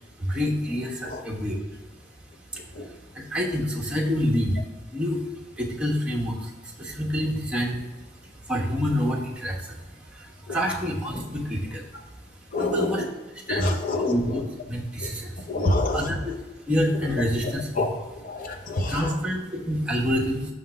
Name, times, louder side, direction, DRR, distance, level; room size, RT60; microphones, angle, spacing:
voice 1, 0.2-1.6 3.1-4.5 4.9-5.2 5.6-6.5 6.8-7.8 8.5-9.7 10.2-11.8 12.6-13.0 13.5-15.3 15.9-16.3 16.7-17.9 18.9-20.5, equal, 5° right, -3 dB, 1.1 m, -27 dB
voice 2, 10.5-10.8 12.5-13.0 13.5-14.4 15.0-15.1 15.5-16.1 17.8-17.9 18.2-19.2, left 2 dB, 50° left, 3 dB, 0.8 m, -27 dB
6.2 x 3.7 x 5.7 m, 1.2 s
head